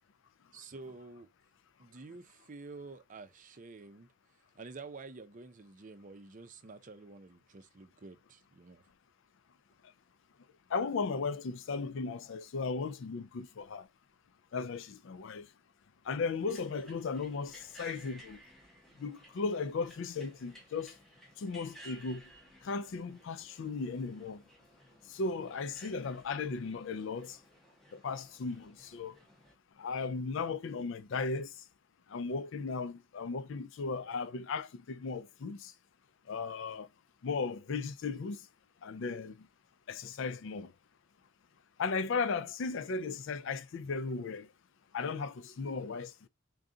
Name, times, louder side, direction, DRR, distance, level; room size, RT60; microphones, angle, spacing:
voice 1, 0.5-1.3 1.8-4.1 4.5-8.8, right 3 dB, 40° right, 0.5 m, -49 dB
voice 2, 10.7-13.9 14.5-15.5 16.0-18.4 19.0-21.0 21.4-22.2 22.6-24.4 25.1-27.4 27.9-29.2 29.8-31.6 32.1-35.7 36.3-36.9 37.2-38.5 38.8-39.5 39.9-40.7 41.8-44.5 44.9-46.3, left 4 dB, 60° left, 0.4 m, -36 dB
sound 1, 16.4-29.5, right 1 dB, ahead, 0.8 m, -57 dB
3.9 x 2.2 x 3.7 m
head